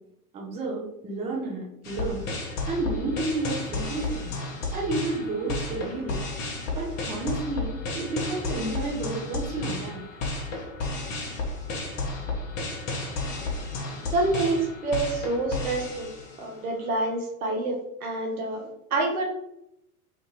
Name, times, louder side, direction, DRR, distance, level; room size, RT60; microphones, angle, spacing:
voice 1, 0.3-4.3 4.7-6.2 6.7-10.0, right 2 dB, 15° right, -3 dB, 0.5 m, -31 dB
sound 1, 1.8-16.6, left 3 dB, 40° left, 0.7 m, -32 dB
voice 2, 14.1-19.2, right 2 dB, 65° right, 0 dB, 0.9 m, -27 dB
2.5 x 2.5 x 2.8 m, 0.80 s
figure-of-eight pair, 90°, 46 cm